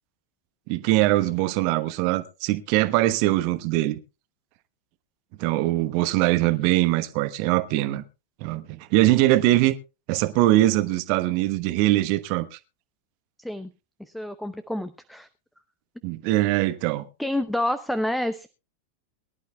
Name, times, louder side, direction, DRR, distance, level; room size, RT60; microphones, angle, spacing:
voice 1, 0.7-4.0 5.4-8.0 8.4-9.7 10.1-12.6 16.0-17.0, right 16 dB, 45° right, 1.1 m, -22 dB
voice 2, 13.4-13.7 14.0-15.3 17.2-18.5, left 1 dB, ahead, 0.7 m, -28 dB
22.5 x 11.5 x 2.3 m
figure-of-eight pair, 90°, 0 cm